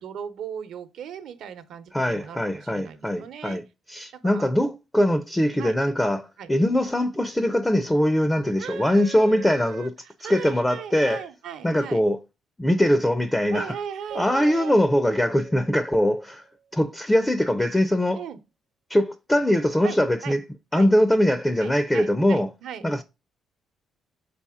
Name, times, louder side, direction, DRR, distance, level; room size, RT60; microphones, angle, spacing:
voice 1, 0.0-3.6 4.1-4.5 5.6-5.7 6.4-6.5 8.6-12.0 13.5-14.8 18.1-18.4 19.8-20.4 20.7-20.9 21.6-22.9, right 8 dB, 65° right, 0.9 m, -38 dB
voice 2, 1.9-3.6 3.9-9.9 10.2-11.3 11.6-12.2 12.6-13.7 14.1-16.4 16.7-18.2 18.9-20.4 20.7-22.5 22.8-23.0, equal, 5° left, 0.5 m, -22 dB
Keyboard (musical), 14.1-16.5, right 7 dB, 50° right, 0.6 m, -43 dB
6.8 x 4.2 x 3.6 m
cardioid pair, 140°, 0 cm